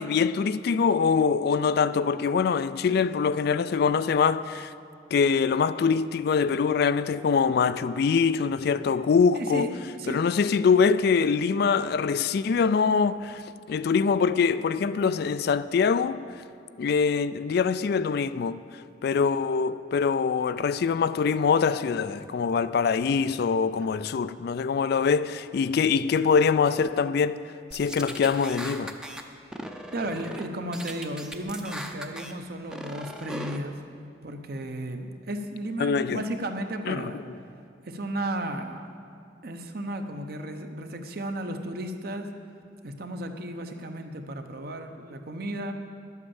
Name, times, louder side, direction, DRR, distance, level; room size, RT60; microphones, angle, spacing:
voice 1, 0.0-4.7 5.1-9.7 10.1-13.4 13.7-16.2 16.8-18.6 19.0-27.4 27.7-28.9 35.8-36.2 36.9-37.1, left 5 dB, 55° left, 0.3 m, -24 dB
voice 2, 9.3-9.7 10.0-10.2 29.9-33.8 34.2-37.2 37.8-38.9 39.4-42.3 42.8-45.7, right 1 dB, 55° right, 0.9 m, -34 dB
sound 1, 27.7-29.2 29.5-30.5 30.7-32.3 32.7-33.6, equal, 5° right, 0.6 m, -38 dB
11.5 x 8.3 x 7.1 m
head